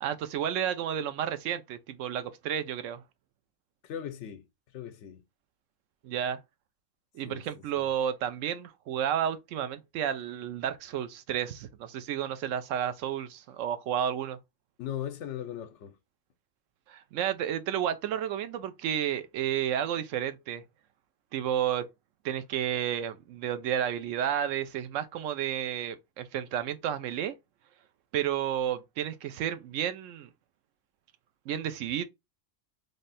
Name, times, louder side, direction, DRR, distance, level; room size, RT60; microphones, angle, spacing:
voice 1, 0.0-3.0 6.0-6.4 7.1-14.4 16.9-20.6 21.3-21.8 22.2-27.3 28.1-30.3 31.5-32.0, right 10 dB, 80° right, 1.0 m, -31 dB
voice 2, 3.8-4.4 4.7-5.2 7.2-7.4 7.7-7.9 14.8-15.9, left 10 dB, 70° left, 0.9 m, -38 dB
3.3 x 2.7 x 4.0 m
omnidirectional pair, 1.3 m